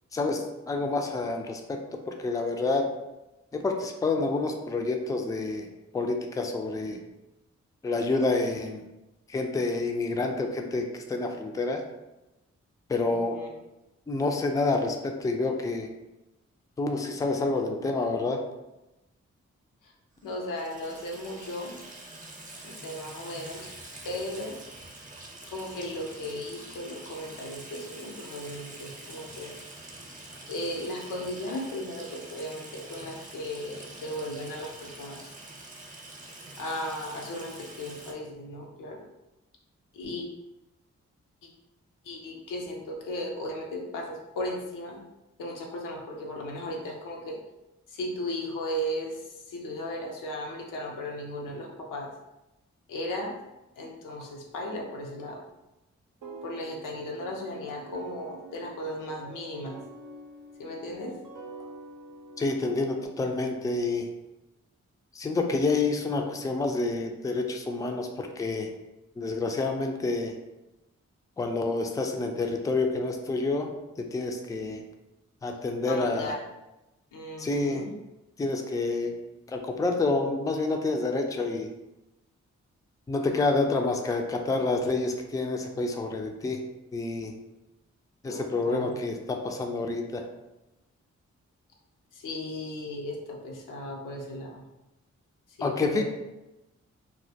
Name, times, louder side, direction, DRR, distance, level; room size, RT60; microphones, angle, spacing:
voice 1, 0.1-2.8 3.5-5.7 5.9-7.0 7.8-8.8 9.3-11.8 12.9-13.4 14.1-15.9 16.8-18.4 62.4-64.1 65.1-68.7 69.2-70.4 71.4-73.7 74.0-74.8 75.4-76.3 77.4-77.9 78.4-79.1 79.5-81.7 83.1-86.6 86.9-87.3 88.2-90.2 95.6-96.0, left 3 dB, 10° left, 3 dB, 0.3 m, -28 dB
voice 2, 13.1-13.5 19.8-19.9 20.2-21.8 22.6-23.7 24.0-24.6 25.5-29.5 30.5-35.2 36.6-39.0 39.9-40.3 41.4-41.5 42.0-45.0 45.4-47.4 47.9-52.1 52.9-53.3 53.8-55.4 56.4-59.8 60.6-61.1 75.9-76.4 77.1-77.9 88.2-89.0 92.1-94.6 95.6-96.0, left 1 dB, 85° left, -1 dB, 0.5 m, -36 dB
Water tap faucet / Sink (filling or washing), 20.2-38.1, right 2 dB, 25° right, 0.7 m, -45 dB
sound 1, 56.2-63.1, right 2 dB, 75° right, 0.6 m, -46 dB
2.1 x 2.1 x 2.7 m, 0.97 s
supercardioid pair, 40°, 31 cm